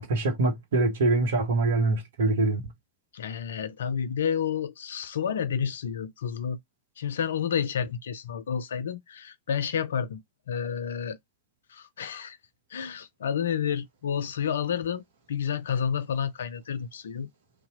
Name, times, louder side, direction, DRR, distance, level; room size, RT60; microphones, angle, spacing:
voice 1, 0.0-2.6, right 2 dB, 60° right, 0.8 m, -24 dB
voice 2, 3.1-6.6 7.0-10.2 10.5-11.2 11.7-12.4 12.7-15.0 15.3-17.3, left 8 dB, 65° left, 0.4 m, -30 dB
2.8 x 2.0 x 3.9 m
figure-of-eight pair, 90°, 0 cm